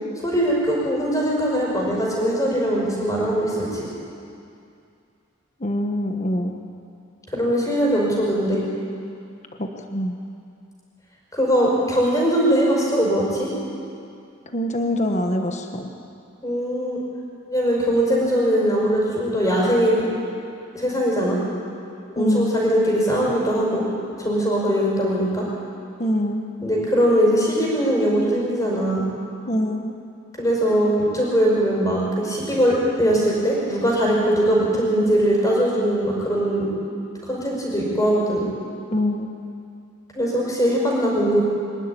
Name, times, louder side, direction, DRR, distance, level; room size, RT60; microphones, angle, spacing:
voice 1, 0.2-3.9 7.3-8.6 11.3-13.5 16.4-17.0 17.5-19.9 20.7-21.4 22.1-23.8 24.2-25.5 26.6-29.0 30.4-36.7 37.3-38.4 40.1-41.4, equal, 15° left, -4 dB, 5.7 m, -21 dB
voice 2, 5.6-6.5 9.6-10.2 14.5-15.9 22.2-22.6 26.0-26.4 29.5-29.9 38.9-39.3, left 1 dB, 35° left, 4 dB, 1.4 m, -24 dB
24.0 x 12.5 x 9.9 m, 2.5 s
head